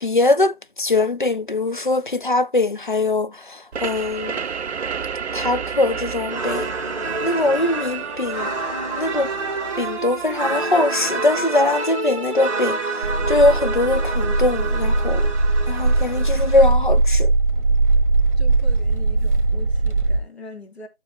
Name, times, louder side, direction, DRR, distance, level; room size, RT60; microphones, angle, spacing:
voice 1, 0.0-4.4 5.3-6.7 7.2-8.5 9.0-9.3 9.8-12.8 13.3-15.2 15.7-17.3, left 2 dB, 45° left, 0.5 m, -21 dB
sound 1, 3.7-13.1, right 6 dB, 65° right, 0.6 m, -32 dB
sound 2, 6.3-16.7, right 3 dB, 25° right, 1.7 m, -28 dB
sound 3, 13.0-20.2, right 2 dB, 50° right, 1.5 m, -20 dB
voice 2, 18.4-20.9, left 2 dB, 65° left, 3.1 m, -41 dB
14.5 x 6.1 x 2.2 m
figure-of-eight pair, 170°, 35 cm